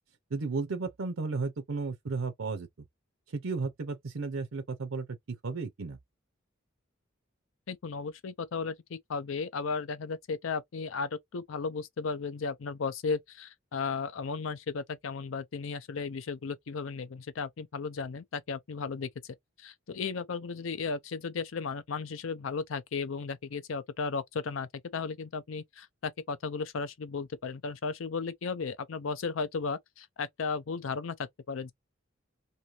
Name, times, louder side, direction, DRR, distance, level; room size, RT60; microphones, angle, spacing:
voice 1, 0.3-2.9 3.3-5.1 5.4-6.0, right 4 dB, 90° right, 0.6 m, -34 dB
voice 2, 7.7-31.7, left 5 dB, 90° left, 0.5 m, -35 dB
2.7 x 2.6 x 3.0 m
head